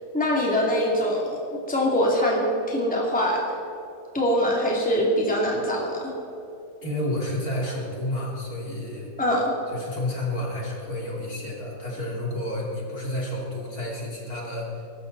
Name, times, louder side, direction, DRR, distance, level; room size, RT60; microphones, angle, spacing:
voice 1, 0.1-1.4 1.7-3.4 4.1-6.1 9.2-9.5, equal, 5° left, -3 dB, 2.7 m, -23 dB
voice 2, 6.8-9.1 9.7-14.8, left 1 dB, 50° left, -3 dB, 3.3 m, -30 dB
22.5 x 12.5 x 4.1 m, 2.9 s
omnidirectional pair, 2.0 m